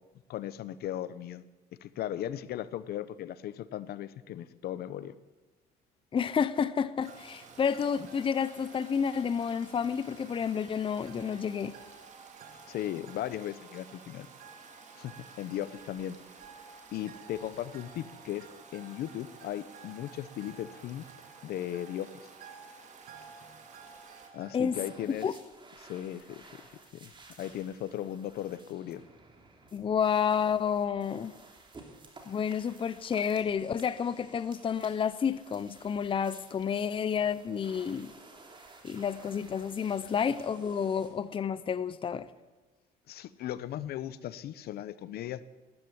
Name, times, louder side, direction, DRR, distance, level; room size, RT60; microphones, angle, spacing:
voice 1, 0.3-1.4 1.8-5.1 12.7-14.3 14.9-16.2 16.9-21.1 21.4-22.3 24.3-25.3 25.8-26.6 26.9-27.1 27.4-29.0 43.1-45.4, left 11 dB, 70° left, 0.8 m, -37 dB
voice 2, 6.1-11.7 24.5-24.8 25.2-25.3 29.7-31.3 32.3-38.1 38.8-42.3, left 7 dB, 30° left, 0.7 m, -30 dB
Stream, 7.0-24.3, right 5 dB, 45° right, 2.6 m, -53 dB
sound 1, 7.1-25.0, right 6 dB, 65° right, 2.2 m, -55 dB
sound 2, 24.7-41.1, right 3 dB, 30° right, 3.2 m, -55 dB
13.5 x 10.5 x 9.8 m
cardioid pair, 110°, 17 cm